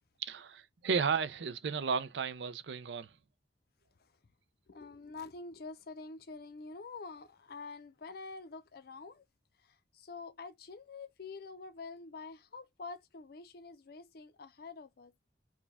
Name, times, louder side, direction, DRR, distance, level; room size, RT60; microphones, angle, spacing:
voice 1, 0.2-3.1, right 5 dB, 80° right, 0.5 m, -34 dB
voice 2, 4.7-9.3 9.6-15.1, left 4 dB, 60° left, 0.5 m, -47 dB
4.8 x 2.2 x 3.5 m
head